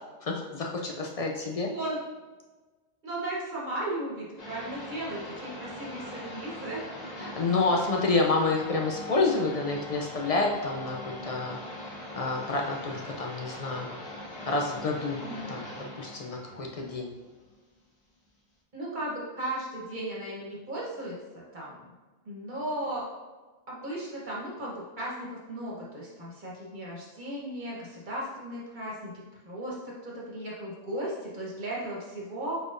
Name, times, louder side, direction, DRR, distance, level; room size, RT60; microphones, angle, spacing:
voice 1, 0.2-1.7 7.2-11.6 12.1-14.0 14.5-15.2 15.5-15.6 16.0-17.1, left 3 dB, 60° left, 1 dB, 0.3 m, -28 dB
voice 2, 1.7-2.0 3.0-6.8 7.2-7.5 15.2-15.6 18.7-21.9 22.2-23.0 23.7-29.1 29.4-32.6, right 1 dB, 45° right, -5 dB, 1.2 m, -36 dB
sound 1, 4.4-17.8, left 1 dB, 40° left, 0.9 m, -41 dB
4.8 x 4.1 x 2.5 m, 1.3 s
omnidirectional pair, 1.2 m